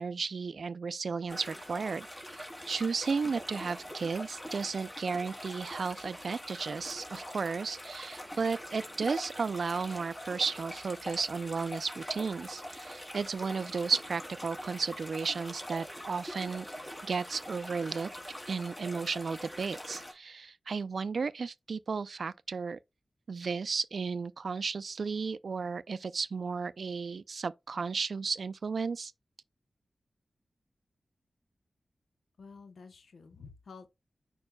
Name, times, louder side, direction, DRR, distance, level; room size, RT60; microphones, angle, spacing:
voice 1, 0.0-2.1 2.3-16.7 17.0-18.1 18.5-22.8 23.3-29.1, right 5 dB, 75° right, 0.4 m, -34 dB
sound 1, 1.3-20.1, equal, 20° left, 2.8 m, -43 dB
voice 2, 32.4-33.9, left 5 dB, 85° left, 0.8 m, -50 dB
8.8 x 5.2 x 2.2 m
cardioid pair, 50°, 0 cm